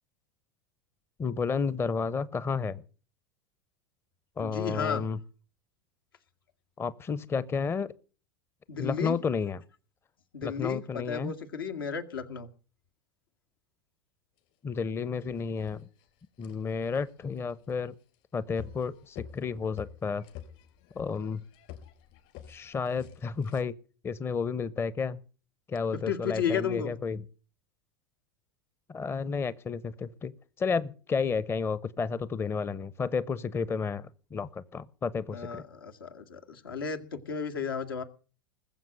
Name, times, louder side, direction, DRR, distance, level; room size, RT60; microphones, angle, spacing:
voice 1, 1.2-2.8 4.4-5.2 6.8-7.9 8.8-9.6 10.4-11.3 14.6-15.9 16.4-17.9 18.3-20.2 20.9-21.4 22.5-23.7 24.0-25.2 25.7-27.2 28.9-35.7, left 5 dB, 20° left, 17 dB, 0.8 m, -31 dB
voice 2, 4.4-5.0 8.7-9.2 10.3-12.5 26.1-26.9 35.3-38.0, left 6 dB, 80° left, 6 dB, 2.0 m, -33 dB
sound 1, 14.4-14.5 15.0-23.6, left 10 dB, 55° left, 3.8 m, -50 dB
20.5 x 7.5 x 7.7 m, 0.39 s
hypercardioid pair, 90°, 12 cm